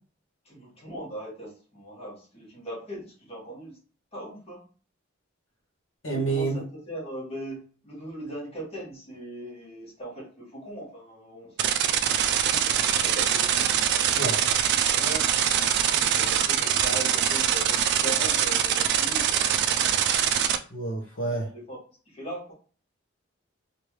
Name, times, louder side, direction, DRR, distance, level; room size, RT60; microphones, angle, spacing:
voice 1, 0.4-3.8 4.1-4.7 6.0-12.0 12.5-14.3 14.9-15.3 15.9-19.9 21.5-21.8 22.1-22.5, right 1 dB, 30° left, -4 dB, 1.4 m, -39 dB
voice 2, 6.0-6.6 14.1-14.4 20.7-21.5, right 3 dB, 70° left, -2 dB, 0.8 m, -28 dB
sound 1, 11.6-20.6, right 9 dB, 60° right, 0.3 m, -23 dB
3.2 x 2.6 x 3.0 m, 0.40 s
head